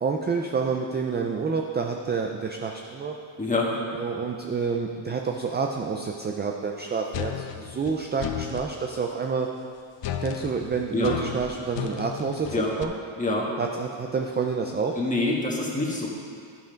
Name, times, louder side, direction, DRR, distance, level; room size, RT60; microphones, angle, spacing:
voice 1, 0.0-3.2 3.9-9.5 10.2-12.9 13.6-15.0, right 5 dB, 25° right, 2 dB, 0.4 m, -28 dB
voice 2, 3.4-3.8 10.9-11.2 12.5-12.7 13.2-13.5 15.0-16.1, left 2 dB, 15° left, -3 dB, 1.4 m, -26 dB
sound 1, 7.1-8.7 10.0-12.8, left 10 dB, 65° left, 0.7 m, -33 dB
12.0 x 5.7 x 5.1 m, 2.3 s
wide cardioid pair, 150°, 48 cm